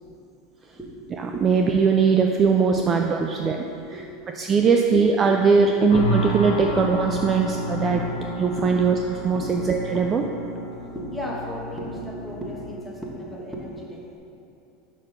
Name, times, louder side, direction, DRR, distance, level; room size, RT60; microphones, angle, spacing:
voice 1, 1.4-3.6 4.4-8.0 8.4-10.2, right 5 dB, 25° right, 3 dB, 0.3 m, -20 dB
voice 2, 3.7-4.2 4.8-4.9 5.6-5.7 6.1-6.2 6.6-6.7 7.2-7.4 7.9-8.0 8.6-8.7 9.3-9.5 10.9-14.2, equal, ahead, -3 dB, 1.2 m, -35 dB
sound 1, 5.9-12.8, equal, 85° left, 1.7 m, -31 dB
5.7 x 5.1 x 5.7 m, 2.8 s
supercardioid pair, 135°, 0 cm